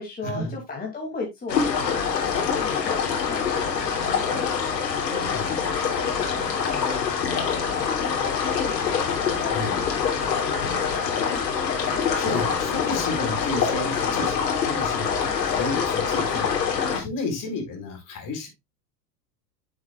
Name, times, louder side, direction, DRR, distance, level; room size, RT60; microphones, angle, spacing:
voice 1, 0.0-8.5 9.1-11.2, left 3 dB, 20° left, 2.9 m, -38 dB
sound 1, 1.5-17.0, left 6 dB, 80° left, 3.4 m, -25 dB
voice 2, 12.0-16.6 16.9-18.5, left 3 dB, 40° left, 4.6 m, -32 dB
8.8 x 7.7 x 2.4 m
hypercardioid pair, 100°, 49 cm